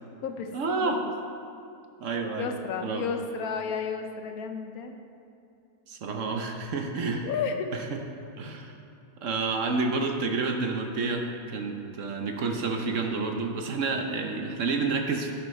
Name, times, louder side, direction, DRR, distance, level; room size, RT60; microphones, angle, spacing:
voice 1, 0.5-1.0 2.0-2.5 2.8-3.0 5.9-7.3 7.9-8.0 8.4-8.7 9.2-15.3, right 4 dB, 60° right, 3 dB, 1.1 m, -29 dB
voice 2, 2.4-5.0 7.2-7.7 14.2-14.6, left 6 dB, 70° left, 6 dB, 1.2 m, -33 dB
11.0 x 11.0 x 3.2 m, 2.6 s
omnidirectional pair, 1.7 m